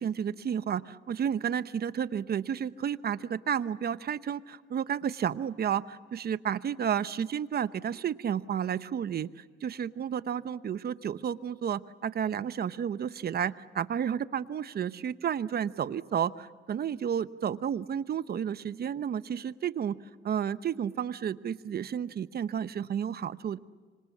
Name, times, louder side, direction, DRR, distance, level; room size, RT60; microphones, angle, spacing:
voice 1, 0.0-20.0 20.2-23.6, right 8 dB, 50° right, 14 dB, 0.9 m, -31 dB
26.5 x 25.5 x 7.4 m, 1.5 s
cardioid pair, 90°, 20 cm